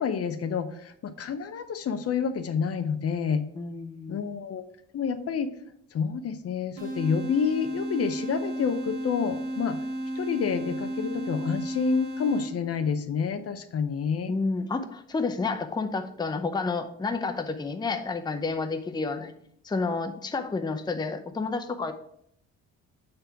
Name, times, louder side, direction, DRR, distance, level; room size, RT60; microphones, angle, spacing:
voice 1, 0.0-3.4 4.1-4.6 4.9-5.5 5.9-9.8 10.2-14.3, left 6 dB, 50° left, 9 dB, 0.7 m, -28 dB
voice 2, 3.5-4.2 14.3-19.3 19.6-21.9, left 4 dB, 15° left, 6 dB, 0.6 m, -30 dB
sound 1, 6.8-12.8, right 1 dB, 90° right, 2.4 m, -33 dB
6.7 x 3.4 x 5.7 m, 0.68 s
cardioid pair, 90°, 30 cm